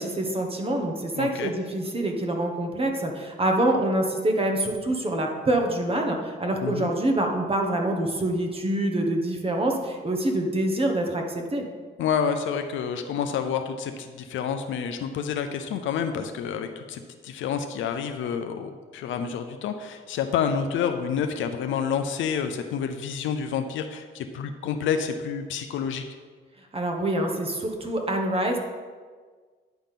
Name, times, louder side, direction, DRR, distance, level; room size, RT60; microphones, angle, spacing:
voice 1, 0.0-11.6 26.7-28.6, right 1 dB, 30° right, 2 dB, 1.2 m, -26 dB
voice 2, 1.1-1.5 6.6-6.9 12.0-26.0, left 7 dB, 75° left, 7 dB, 0.6 m, -29 dB
10.0 x 3.6 x 5.8 m, 1.5 s
cardioid pair, 90°, 20 cm